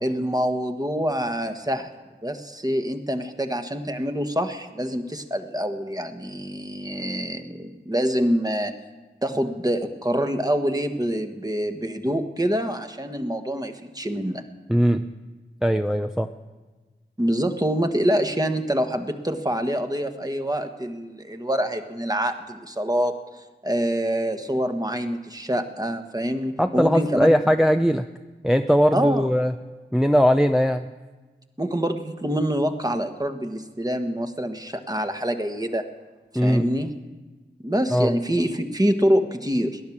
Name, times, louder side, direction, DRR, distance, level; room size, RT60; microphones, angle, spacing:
voice 1, 0.0-1.9 2.2-8.8 9.2-14.5 17.2-23.1 23.6-27.4 28.9-29.3 31.6-35.9 36.3-36.9 37.6-39.8, equal, 20° right, 6 dB, 1.5 m, -26 dB
voice 2, 14.7-15.0 15.6-16.3 26.6-28.1 28.4-29.5 29.9-30.9 36.3-36.7 37.9-38.1, equal, 5° right, 7 dB, 0.7 m, -20 dB
18.5 x 10.5 x 7.3 m, 1.3 s
cardioid pair, 40°, 19 cm